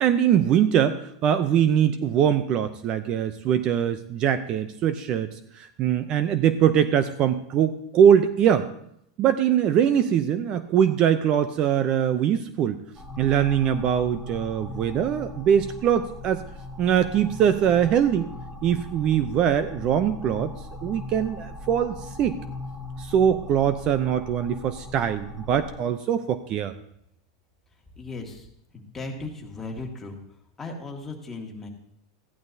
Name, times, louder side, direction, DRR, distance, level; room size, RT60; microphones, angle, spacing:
voice 1, 0.0-8.7 9.2-12.8 13.2-16.4 16.8-18.3 18.6-20.5 20.8-22.4 23.0-26.7, right 9 dB, 40° right, 12 dB, 0.5 m, -22 dB
sound 1, 12.9-25.8, left 2 dB, 5° right, 1.7 m, -39 dB
voice 2, 28.0-28.5 28.7-30.2 30.6-31.7, left 3 dB, 10° left, 0 dB, 1.9 m, -36 dB
15.0 x 11.0 x 2.7 m, 0.73 s
supercardioid pair, 135°, 2 cm